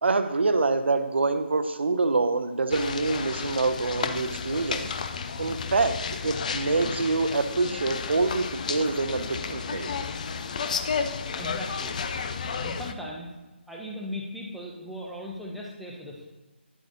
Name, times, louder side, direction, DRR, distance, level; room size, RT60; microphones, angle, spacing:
voice 1, 0.0-4.9 5.4-6.0 6.2-9.9, right 3 dB, 65° right, 9 dB, 0.6 m, -26 dB
sound 1, 2.7-12.9, left 5 dB, 40° left, 0.5 m, -32 dB
voice 2, 11.4-11.9 12.6-13.3 13.7-16.3, left 1 dB, ahead, -3 dB, 0.9 m, -38 dB
10.0 x 7.8 x 2.7 m, 1.1 s
figure-of-eight pair, 150°, 6 cm